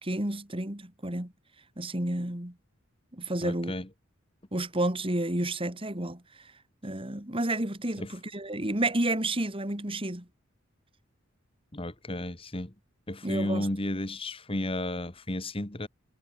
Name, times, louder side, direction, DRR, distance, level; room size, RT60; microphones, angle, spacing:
voice 1, 0.0-1.3 1.8-2.5 3.1-3.7 4.5-6.5 6.8-10.3 13.2-13.7, right 1 dB, 25° right, 2.9 m, -31 dB
voice 2, 3.4-3.9 8.0-8.1 11.7-12.7 13.1-15.9, left 1 dB, 30° left, 1.9 m, -33 dB
head